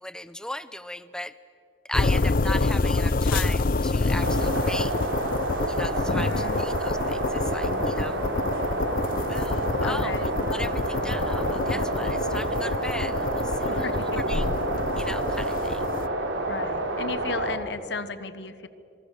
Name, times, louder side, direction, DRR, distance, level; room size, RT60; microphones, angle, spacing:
voice 1, 0.0-1.3 1.9-4.9 5.7-8.2 9.3-14.5 15.0-15.8, left 1 dB, 5° left, 14 dB, 0.6 m, -37 dB
sound 1, 1.9-16.1, left 3 dB, 45° left, 0.6 m, -27 dB
sound 2, 4.2-17.6, right 2 dB, 85° right, 3.2 m, -29 dB
voice 2, 6.2-6.6 9.8-10.3 13.7-14.2 16.5-18.7, left 3 dB, 65° left, 13 dB, 1.2 m, -34 dB
26.5 x 25.5 x 6.6 m, 2.6 s
head